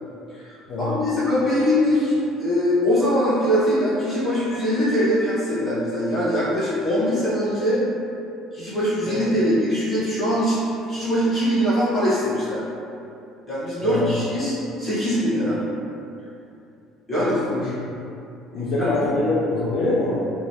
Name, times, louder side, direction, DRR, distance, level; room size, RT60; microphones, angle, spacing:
voice 1, 0.3-7.8 8.5-10.6 10.9-12.6 13.5-15.6 17.1-17.4 18.5-18.9, equal, 20° left, -12 dB, 1.2 m, -22 dB
voice 2, 17.5-18.0 18.5-20.2, left 2 dB, 55° left, -8 dB, 0.4 m, -25 dB
3.0 x 2.2 x 2.7 m, 2.7 s
cardioid pair, 150°, 0 cm